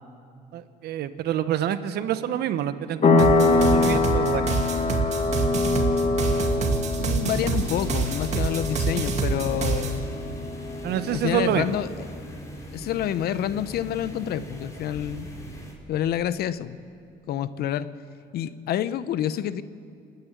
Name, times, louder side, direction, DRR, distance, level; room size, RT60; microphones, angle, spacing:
voice 1, 0.5-4.6 10.8-11.8, right 10 dB, 70° right, 12 dB, 1.0 m, -27 dB
sound 1, 3.0-11.4, left 3 dB, 45° left, 1.8 m, -24 dB
sound 2, 3.2-10.0, right 4 dB, 40° right, 2.3 m, -26 dB
voice 2, 7.0-10.1 11.1-11.9 12.7-15.3 15.9-16.8 17.3-17.9 18.3-19.6, left 10 dB, 65° left, 15 dB, 0.8 m, -28 dB
sound 3, 7.2-15.7, equal, 20° left, 4.0 m, -40 dB
28.0 x 9.8 x 9.4 m, 2.3 s
cardioid pair, 110°, 17 cm